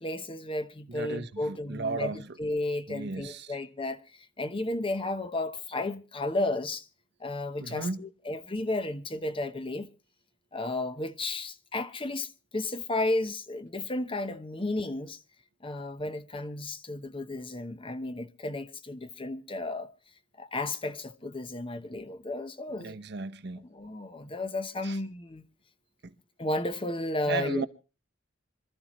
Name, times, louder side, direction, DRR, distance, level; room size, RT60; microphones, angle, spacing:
voice 1, 0.0-4.0 4.4-6.8 7.2-9.9 10.5-15.2 15.6-19.9 20.4-23.0 23.7-25.4 26.4-27.7, left 2 dB, 25° left, 0.9 m, -33 dB
voice 2, 0.9-2.4 2.9-3.6 7.6-8.0 22.7-23.7 24.8-25.0 26.0-26.1 27.3-27.7, right 3 dB, 60° right, 0.9 m, -35 dB
26.5 x 13.0 x 3.0 m
head